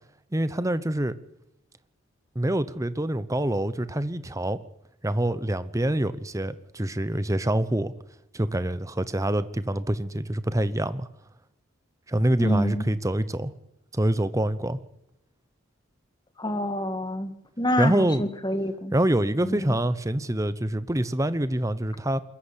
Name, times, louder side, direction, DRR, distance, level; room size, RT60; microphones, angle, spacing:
voice 1, 0.3-1.1 2.3-4.6 5.0-7.9 8.3-11.1 12.1-13.5 13.9-14.8 17.8-18.2 18.9-22.2, right 1 dB, 15° right, 0.8 m, -25 dB
voice 2, 12.4-12.9 16.4-18.9 19.4-19.8, equal, 20° left, 1.7 m, -27 dB
21.5 x 14.5 x 9.9 m
head